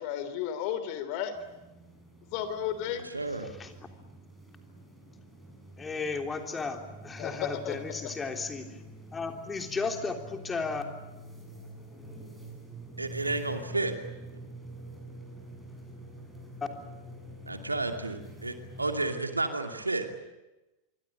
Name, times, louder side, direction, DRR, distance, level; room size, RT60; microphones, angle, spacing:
voice 1, 0.0-1.3 2.3-3.1 7.2-8.1, left 10 dB, 45° left, 11 dB, 3.3 m, -33 dB
sound 1, 1.3-19.1, right 1 dB, ahead, 7.8 m, -47 dB
voice 2, 2.9-3.5 13.0-14.0 17.5-20.1, right 2 dB, 80° right, 6 dB, 2.6 m, -32 dB
voice 3, 5.8-8.8 9.1-10.8, left 4 dB, 15° left, 4 dB, 3.4 m, -34 dB
26.0 x 24.0 x 9.0 m, 1.0 s
figure-of-eight pair, 90°, 0 cm